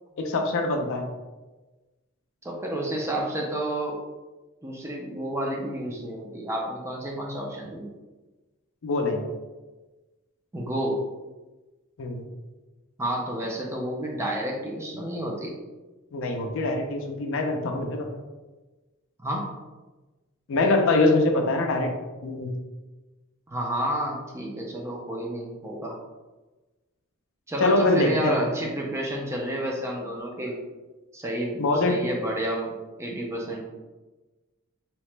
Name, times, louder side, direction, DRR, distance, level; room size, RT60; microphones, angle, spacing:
voice 1, 0.2-1.1 8.8-9.3 12.0-12.2 16.1-18.1 20.5-21.9 22.2-22.5 27.6-28.4 31.6-32.0, left 2 dB, 60° left, 3 dB, 0.4 m, -23 dB
voice 2, 2.4-4.0 4.6-7.9 10.5-11.0 13.0-15.5 19.2-19.6 23.5-26.0 27.5-30.6 31.1-32.7 33.0-33.6, right 1 dB, 10° right, -1 dB, 0.3 m, -30 dB
2.8 x 2.0 x 3.1 m, 1.2 s
head